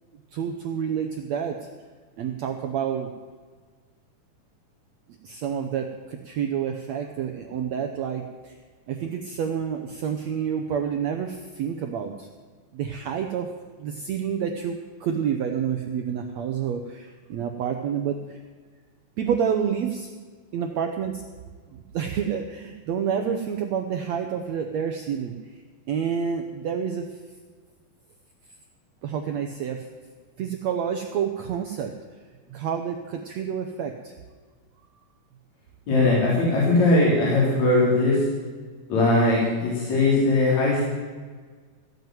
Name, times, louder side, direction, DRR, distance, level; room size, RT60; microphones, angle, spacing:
voice 1, 0.3-1.7 2.2-3.1 5.2-8.6 8.9-12.3 12.7-13.5 13.8-18.4 19.2-20.1 20.5-21.2 21.7-25.6 25.9-27.2 29.0-29.9 30.4-31.9 32.5-34.1, right 7 dB, 75° right, 5 dB, 1.6 m, -29 dB
voice 2, 35.9-38.2 38.9-40.8, left 2 dB, 50° left, -6 dB, 4.9 m, -20 dB
15.5 x 8.0 x 9.2 m, 1.5 s
omnidirectional pair, 4.2 m